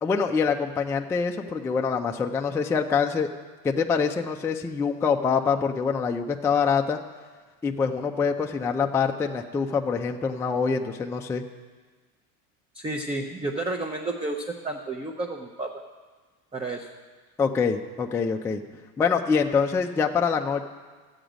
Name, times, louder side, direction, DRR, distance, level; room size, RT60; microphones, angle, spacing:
voice 1, 0.0-3.3 3.6-7.0 7.6-11.4 17.4-18.6 19.0-20.6, left 5 dB, 5° left, 3 dB, 0.3 m, -25 dB
voice 2, 12.7-15.7 16.5-16.9, right 2 dB, 15° right, 2 dB, 0.7 m, -31 dB
12.5 x 8.0 x 5.1 m, 1.4 s
supercardioid pair, 105°, 43 cm